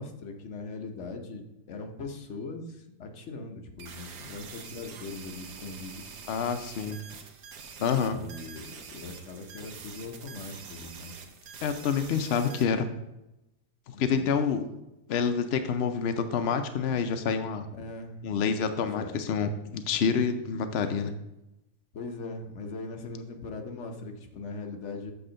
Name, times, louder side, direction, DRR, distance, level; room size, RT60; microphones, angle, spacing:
voice 1, 0.0-6.1 8.0-11.2 13.9-14.3 17.7-18.2 18.9-19.1 21.9-25.1, left 3 dB, 50° left, 4 dB, 1.1 m, -40 dB
sound 1, 3.8-12.6, right 5 dB, 65° right, 1.3 m, -45 dB
voice 2, 6.3-7.0 7.8-8.2 11.6-12.9 13.9-14.6 15.1-17.6 18.2-21.1, left 6 dB, 75° left, 7 dB, 0.5 m, -27 dB
7.9 x 3.5 x 6.3 m, 0.92 s
omnidirectional pair, 1.8 m